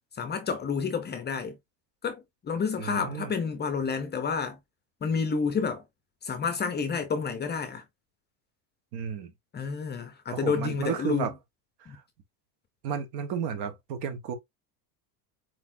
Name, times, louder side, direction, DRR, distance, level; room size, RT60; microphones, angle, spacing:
voice 1, 0.2-1.6 2.0-4.6 5.0-5.8 6.2-7.8 9.5-11.3 11.9-12.0, left 5 dB, 20° left, 0.7 m, -30 dB
voice 2, 2.8-3.3 8.9-9.3 10.3-11.3 11.8-12.0 12.8-14.3, right 7 dB, 50° right, 1.4 m, -33 dB
4.6 x 4.2 x 2.7 m
supercardioid pair, 140°, 48 cm